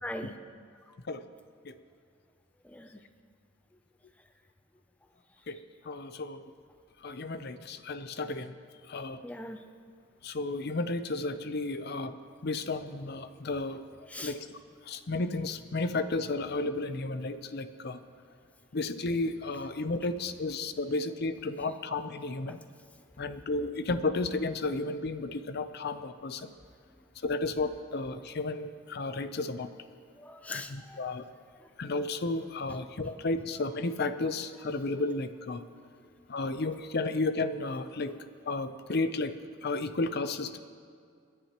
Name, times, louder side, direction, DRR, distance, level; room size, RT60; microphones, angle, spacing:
voice 1, 0.0-0.4 2.6-3.0 9.2-9.6 14.1-14.3 30.2-31.2, left 1 dB, 5° left, 6 dB, 0.4 m, -41 dB
voice 2, 5.8-6.5 7.0-8.5 8.9-9.2 10.2-12.2 12.4-13.9 14.2-14.5 14.9-18.0 18.7-22.6 23.2-26.5 27.2-29.7 30.5-31.2 31.8-35.6 36.3-38.2 38.5-39.4 39.6-40.6, left 3 dB, 50° left, 11 dB, 0.6 m, -33 dB
30.0 x 10.0 x 3.0 m, 2.2 s
head